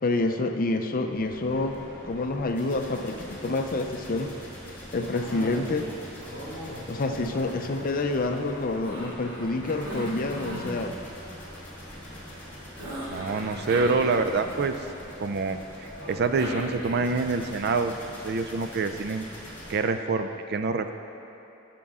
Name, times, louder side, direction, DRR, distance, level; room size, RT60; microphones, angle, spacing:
voice 1, 0.0-1.8 2.0-4.4 4.9-5.9 6.9-11.0, left 2 dB, 40° left, 5 dB, 0.5 m, -28 dB
sound 1, 1.1-19.7, equal, 10° left, 2.1 m, -44 dB
Cough, 5.1-6.0 6.2-8.3 8.8-10.8 12.8-14.8 16.0-17.3, equal, 75° right, 2.2 m, -38 dB
voice 2, 13.1-14.8 15.2-18.0 18.2-19.3 19.7-20.9, right 4 dB, 50° right, 8 dB, 0.4 m, -26 dB
14.0 x 6.0 x 3.6 m, 2.9 s
head